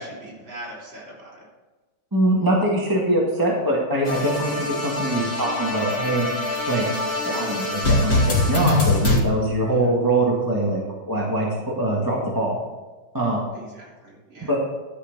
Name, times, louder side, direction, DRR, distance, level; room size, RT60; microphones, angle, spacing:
voice 1, 0.0-1.5 9.7-9.9 13.5-14.6, right 1 dB, 60° right, -5 dB, 4.1 m, -41 dB
voice 2, 2.1-6.3 6.7-6.8 7.2-10.8 11.1-12.6 13.1-13.4 14.4-14.6, right 1 dB, 10° right, -4 dB, 1.5 m, -23 dB
sound 1, 4.1-9.2, left 2 dB, 30° left, 2.1 m, -23 dB
12.0 x 5.5 x 6.6 m, 1.2 s
omnidirectional pair, 2.4 m